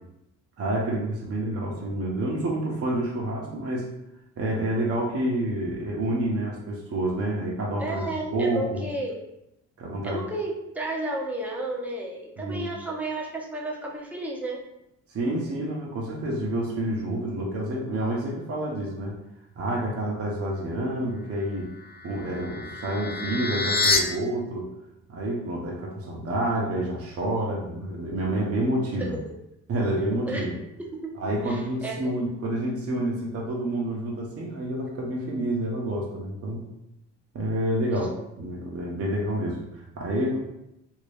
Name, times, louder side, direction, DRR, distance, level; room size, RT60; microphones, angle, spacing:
voice 1, 0.6-3.9 4.4-8.0 8.3-8.8 9.8-10.2 12.4-12.7 15.1-19.2 19.6-21.7 22.0-24.7 25.1-29.1 29.7-30.6 31.2-36.6 37.3-40.4, right 1 dB, 50° right, -2 dB, 0.9 m, -28 dB
voice 2, 7.8-9.1 10.0-14.6 29.0-29.1 30.3-30.4 30.9-31.1 31.4-32.0, right 2 dB, 5° right, -2 dB, 0.7 m, -32 dB
sound 1, 21.7-24.0, left 4 dB, 30° left, 0.5 m, -27 dB
2.9 x 2.7 x 3.3 m, 0.84 s
cardioid pair, 90°, 30 cm